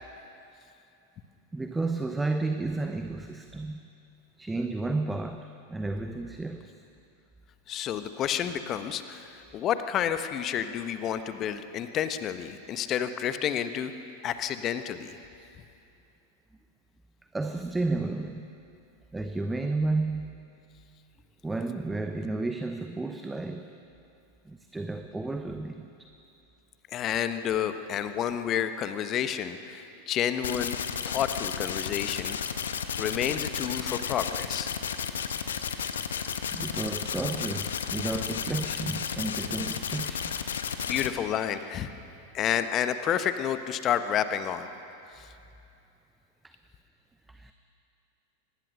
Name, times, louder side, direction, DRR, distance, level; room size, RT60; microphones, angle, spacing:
voice 1, 1.5-3.8 4.4-6.8 17.3-18.5 19.1-20.3 21.4-23.8 24.4-25.9 31.1-31.2 36.5-40.4 46.4-46.5 47.3-47.5, right 2 dB, 10° right, 7 dB, 0.9 m, -32 dB
voice 2, 7.7-13.9 14.2-15.2 26.9-30.8 31.1-32.4 33.0-34.7 40.9-41.9 42.3-44.7 45.2-45.3, left 9 dB, 30° left, 10 dB, 1.2 m, -30 dB
sound 1, 30.4-41.1, left 7 dB, 65° left, 1.2 m, -33 dB
24.0 x 20.0 x 6.5 m, 2.7 s
figure-of-eight pair, 90°, 0 cm